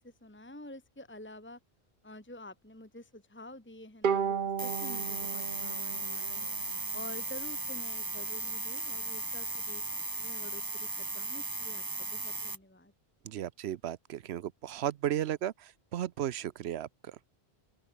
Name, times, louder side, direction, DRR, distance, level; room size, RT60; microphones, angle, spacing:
voice 1, 0.0-1.6 2.0-6.5 6.9-9.8 10.2-12.9, left 1 dB, 10° left, 1.7 m, -49 dB
Bowed string instrument, 4.0-7.4, right 7 dB, 55° right, 1.1 m, -35 dB
sound 1, 4.6-12.6, right 2 dB, 20° right, 1.4 m, -36 dB
voice 2, 13.3-15.5 15.9-16.9, right 11 dB, 85° right, 0.9 m, -34 dB
open air
omnidirectional pair, 1.1 m